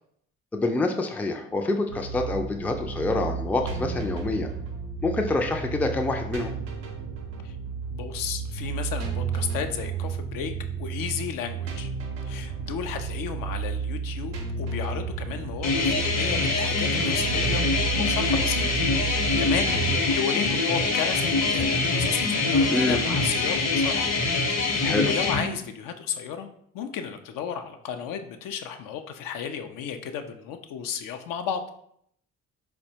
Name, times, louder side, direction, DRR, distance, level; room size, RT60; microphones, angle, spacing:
voice 1, 0.5-4.5 5.0-6.6 22.7-23.0 24.8-25.1, left 2 dB, 5° left, 4 dB, 0.3 m, -26 dB
sound 1, 1.9-20.0, right 5 dB, 85° right, 0.6 m, -32 dB
voice 2, 7.9-11.9 12.3-18.6 19.1-24.1 24.6-26.5 26.7-31.6, left 8 dB, 60° left, 8 dB, 0.5 m, -33 dB
sound 2, 15.6-25.4, left 3 dB, 45° left, 0.8 m, -24 dB
4.1 x 2.2 x 2.7 m, 0.69 s
hypercardioid pair, 40°, 37 cm